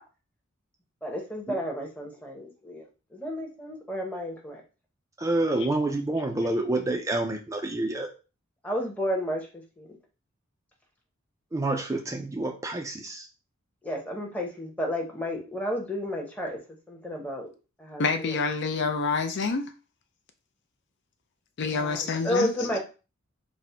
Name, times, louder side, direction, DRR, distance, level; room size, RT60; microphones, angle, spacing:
voice 1, 1.0-4.6 8.6-9.9 13.8-16.6 16.9-17.5 17.8-18.4 21.7-22.8, equal, 5° left, 0.9 m, -32 dB
voice 2, 5.2-8.1 11.5-13.3, right 2 dB, 15° right, 0.3 m, -28 dB
voice 3, 18.0-19.7 21.6-22.5, left 4 dB, 55° left, 0.5 m, -27 dB
4.1 x 2.1 x 4.3 m
head